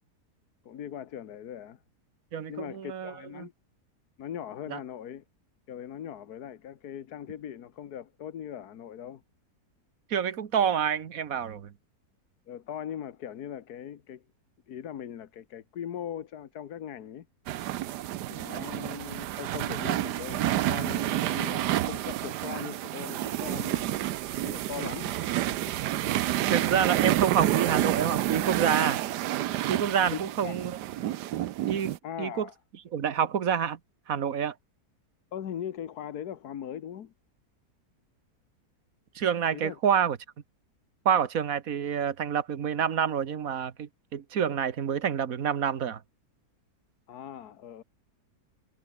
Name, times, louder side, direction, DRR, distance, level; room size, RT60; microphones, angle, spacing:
voice 1, 0.6-1.8 2.5-3.5 4.2-5.2 5.7-9.2 12.5-14.2 14.7-17.3 18.3-24.1 24.4-25.7 30.1-30.6 32.0-32.5 35.3-37.1 39.5-39.8 47.1-47.8, left 9 dB, 65° left, 1.6 m, -40 dB
voice 2, 2.3-3.5 4.7-4.8 10.1-11.7 26.5-29.0 29.7-30.8 31.7-32.5 32.9-33.8 34.1-34.5 39.1-40.2 41.0-46.0, right 8 dB, 55° right, 1.7 m, -28 dB
sound 1, 17.5-32.0, right 13 dB, 80° right, 1.3 m, -29 dB
omnidirectional pair, 1.8 m